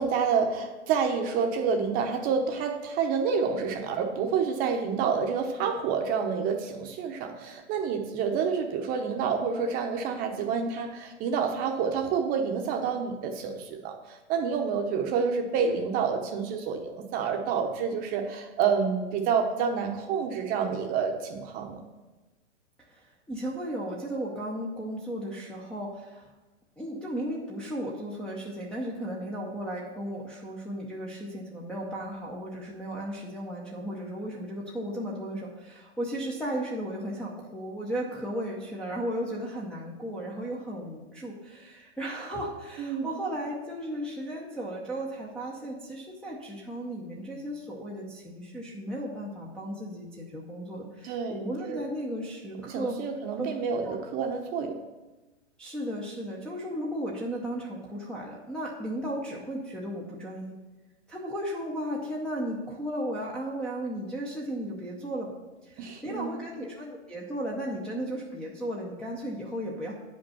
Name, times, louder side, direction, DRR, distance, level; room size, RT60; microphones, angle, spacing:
voice 1, 0.0-21.8 42.8-43.1 51.0-51.8 52.7-54.8 65.8-66.4, right 6 dB, 25° right, 5 dB, 0.9 m, -28 dB
voice 2, 23.3-26.3 26.8-53.0 53.4-53.5 53.8-53.9 55.6-60.5 61.1-65.3 65.6-69.9, right 1 dB, ahead, -6 dB, 0.7 m, -35 dB
9.3 x 5.3 x 5.7 m, 1.1 s
hypercardioid pair, 145°, 36 cm